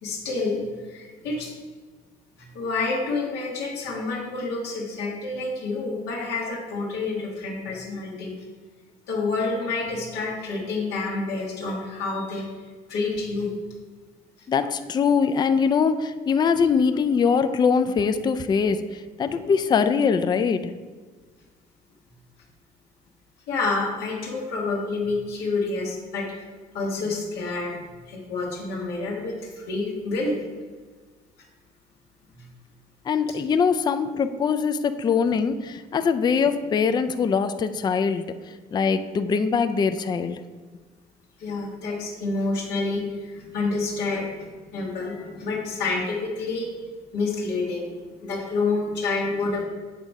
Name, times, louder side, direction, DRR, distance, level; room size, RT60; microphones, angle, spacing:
voice 1, 0.0-1.5 2.4-8.3 9.1-12.5 12.9-13.6 19.3-19.4 23.5-26.3 26.7-30.4 32.3-32.4 41.4-46.7 47.1-47.9 48.2-49.6, left 3 dB, 85° left, -4 dB, 1.2 m, -28 dB
voice 2, 14.5-20.7 33.1-38.3 38.7-40.4, left 6 dB, 25° left, 10 dB, 0.3 m, -22 dB
7.4 x 3.5 x 5.2 m, 1.4 s
cardioid pair, 110°, 17 cm